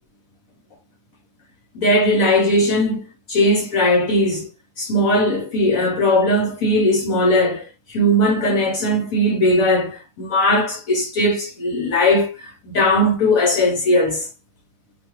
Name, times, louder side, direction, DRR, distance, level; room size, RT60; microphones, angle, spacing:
voice 1, 1.7-3.0 3.3-4.5 4.8-14.3, left 1 dB, 60° left, 1.0 m, -18 dB
2.9 x 2.2 x 2.9 m
omnidirectional pair, 1.8 m